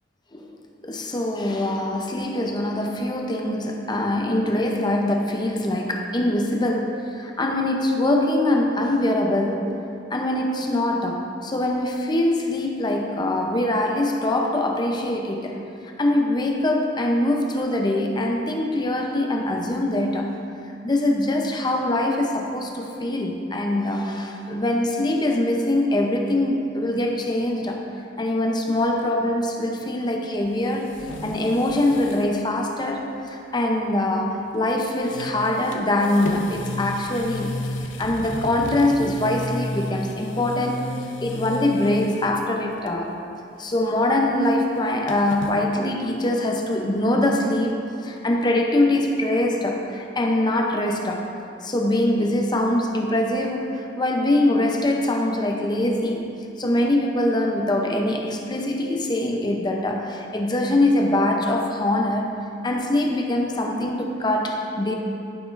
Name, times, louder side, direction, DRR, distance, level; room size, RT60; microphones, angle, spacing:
voice 1, 0.8-9.7 10.1-15.6 16.0-20.3 20.8-27.8 28.2-30.9 31.2-37.6 38.0-40.8 41.2-43.1 43.6-47.8 48.0-51.2 51.6-53.6 54.0-56.3 56.6-62.4 62.6-64.9, left 1 dB, 25° left, 1 dB, 0.7 m, -23 dB
sound 1, 30.4-32.3 32.6-32.7 34.5-34.7 35.0-42.4 42.8-43.2 43.4-45.6, left 2 dB, 85° left, 0.6 m, -34 dB
11.5 x 6.0 x 2.6 m, 2.6 s
head